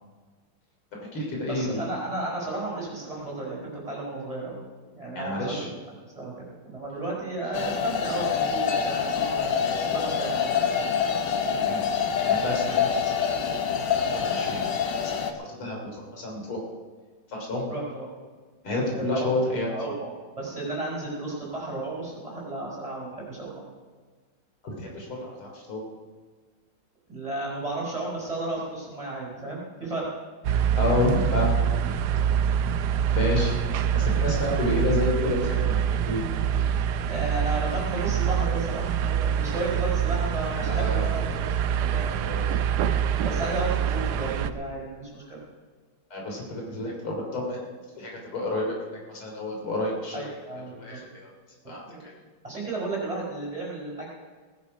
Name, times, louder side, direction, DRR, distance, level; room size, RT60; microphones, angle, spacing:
voice 1, 0.9-1.8 5.1-5.7 11.5-11.9 12.2-13.2 14.0-14.7 15.0-16.6 17.3-17.7 18.6-19.7 24.6-25.8 30.8-31.6 31.8-31.9 33.1-33.6 33.9-36.3 40.5-41.1 42.1-42.6 46.1-47.6 48.0-48.8 49.1-50.2 50.8-51.3 51.7-52.2, left 2 dB, 80° left, -1 dB, 4.1 m, -30 dB
voice 2, 1.5-4.6 4.9-5.6 6.1-10.6 17.7-18.1 18.9-19.3 19.7-20.1 20.4-23.6 27.1-30.1 34.4-34.8 37.0-41.3 41.8-42.1 43.2-45.4 50.1-51.0 51.9-52.0 52.4-54.1, right 2 dB, 15° right, -4 dB, 4.9 m, -33 dB
sound 1, 7.5-15.3, left 7 dB, 60° left, 1.6 m, -26 dB
sound 2, 30.4-44.5, right 8 dB, 75° right, 1.0 m, -25 dB
18.5 x 10.5 x 5.3 m, 1.5 s
omnidirectional pair, 2.3 m